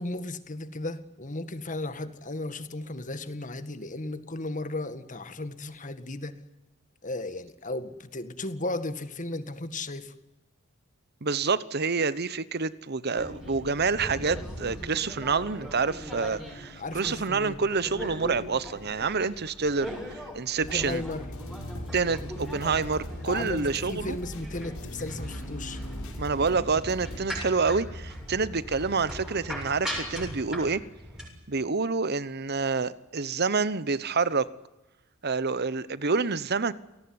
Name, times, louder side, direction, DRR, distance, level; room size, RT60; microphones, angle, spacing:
voice 1, 0.0-6.4 7.0-10.1 16.8-17.6 20.6-21.3 22.1-22.3 23.2-25.8, left 2 dB, 35° left, 1.8 m, -35 dB
voice 2, 11.2-21.0 21.9-24.2 26.2-30.8 31.5-34.5 35.2-36.7, right 4 dB, 50° right, 1.0 m, -28 dB
sound 1, 13.1-31.3, equal, 5° right, 7.1 m, -40 dB
sound 2, 20.6-27.3, equal, 90° left, 6.2 m, -39 dB
28.5 x 18.5 x 9.7 m
head